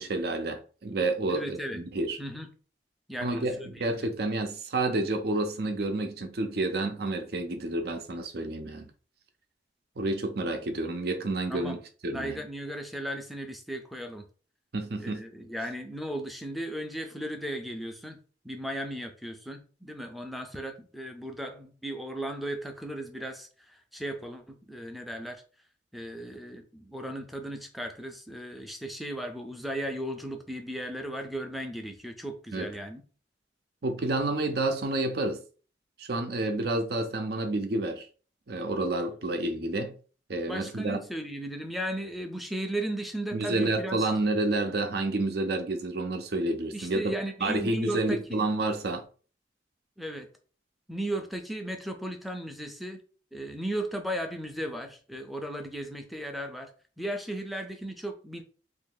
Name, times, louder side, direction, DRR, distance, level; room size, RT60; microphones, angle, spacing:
voice 1, 0.0-2.2 3.2-8.9 10.0-12.4 14.7-15.2 32.5-32.7 33.8-35.4 36.0-38.1 38.5-39.9 40.3-41.0 43.3-49.0, right 2 dB, 60° right, 0.6 m, -29 dB
voice 2, 1.3-1.8 2.2-2.5 3.1-4.1 11.5-11.8 12.1-14.2 15.0-18.2 18.4-25.4 25.9-33.0 40.5-44.1 46.7-48.2 50.0-50.3 50.9-53.0 53.3-56.7 57.0-58.4, right 1 dB, ahead, 0.5 m, -36 dB
2.9 x 2.7 x 3.9 m
head